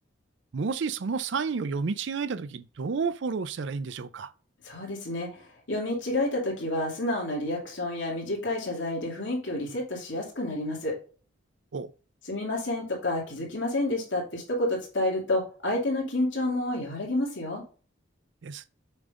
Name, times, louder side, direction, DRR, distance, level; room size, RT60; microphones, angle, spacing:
voice 1, 0.5-4.3 11.7-11.9 18.4-18.7, right 5 dB, 65° right, 0.4 m, -31 dB
voice 2, 4.6-5.3 5.7-11.0 12.3-17.6, left 1 dB, 70° left, 2.6 m, -29 dB
7.1 x 5.2 x 2.5 m
head